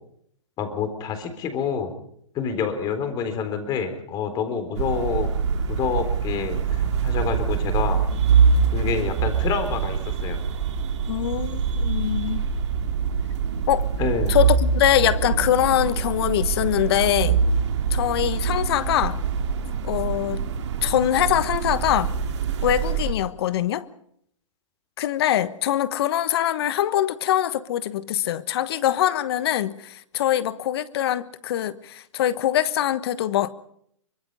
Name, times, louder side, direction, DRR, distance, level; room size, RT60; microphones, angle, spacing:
voice 1, 0.6-1.9 2.3-5.3 5.7-8.0 8.7-10.4 14.0-14.4, left 6 dB, 25° left, 3.9 m, -27 dB
sound 1, 4.7-23.1, right 6 dB, 60° right, 2.5 m, -24 dB
voice 2, 11.1-12.5 13.7-13.9 14.3-17.4 17.9-19.2 19.8-20.4 20.8-22.1 22.6-23.9 25.0-33.5, left 12 dB, 50° left, 1.3 m, -23 dB
24.0 x 21.5 x 5.5 m
hypercardioid pair, 135°, 16 cm